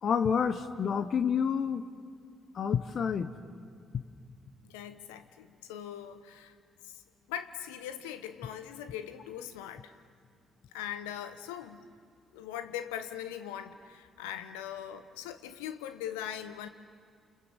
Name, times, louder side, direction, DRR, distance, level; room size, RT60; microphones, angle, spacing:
voice 1, 0.0-1.8 2.5-3.3, left 7 dB, 55° left, 11 dB, 1.0 m, -28 dB
voice 2, 4.6-6.5 6.8-7.0 7.3-9.9 10.7-11.9 12.3-16.7, left 10 dB, 85° left, 11 dB, 1.0 m, -41 dB
29.0 x 27.5 x 7.3 m, 2.2 s
hypercardioid pair, 45°, 0 cm